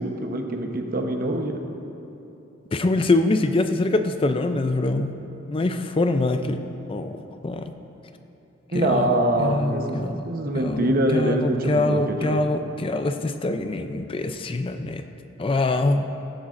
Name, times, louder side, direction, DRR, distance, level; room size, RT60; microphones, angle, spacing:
voice 1, 0.0-1.6 8.7-10.0 10.2-12.4, right 1 dB, 50° right, 3 dB, 1.0 m, -24 dB
voice 2, 2.7-5.1 5.5-6.6 6.9-7.2 7.4-7.7 8.7-9.1 9.4-10.2 10.5-15.0 15.4-16.0, left 2 dB, 30° left, 8 dB, 0.4 m, -24 dB
16.5 x 12.0 x 2.5 m, 2.9 s
head